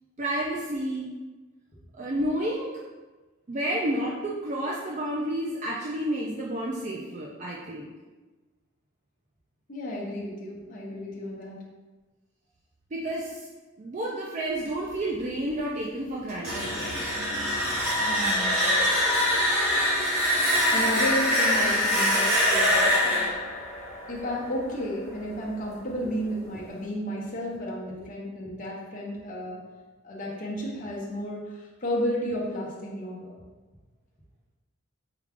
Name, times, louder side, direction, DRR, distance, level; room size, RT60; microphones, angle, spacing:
voice 1, 0.2-1.1 1.9-2.8 3.5-7.9 12.9-13.5 13.8-17.0, right 1 dB, 35° right, -3 dB, 0.4 m, -30 dB
voice 2, 9.7-11.6 18.1-18.7 20.7-23.3 24.1-29.6 30.0-33.3, equal, 40° left, -4 dB, 0.8 m, -32 dB
sound 1, 16.3-25.1, left 1 dB, 70° right, 1.2 m, -24 dB
4.8 x 2.3 x 3.6 m, 1.2 s
head